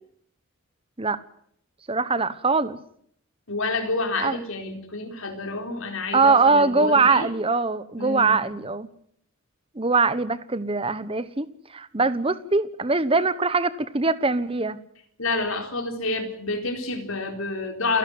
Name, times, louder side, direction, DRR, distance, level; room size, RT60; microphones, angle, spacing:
voice 1, 1.9-2.8 4.2-4.4 6.1-8.9 9.7-11.5 11.7-14.8, right 4 dB, 25° right, 1.0 m, -22 dB
voice 2, 3.5-7.3 8.0-8.4 15.2-18.0, left 3 dB, 75° left, 4.2 m, -28 dB
29.0 x 11.5 x 9.5 m
head